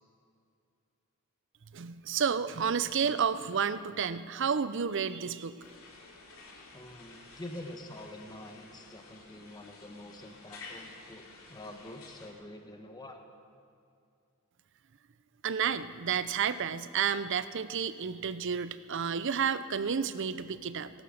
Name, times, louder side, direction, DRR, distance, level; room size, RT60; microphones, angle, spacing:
voice 1, 1.7-5.7 15.4-20.9, right 7 dB, 55° right, 14 dB, 0.6 m, -31 dB
sound 1, 5.6-12.3, left 3 dB, 70° left, 2.7 m, -52 dB
voice 2, 6.7-13.2, left 1 dB, 20° left, 5 dB, 1.1 m, -46 dB
18.0 x 11.5 x 6.4 m, 2.5 s
head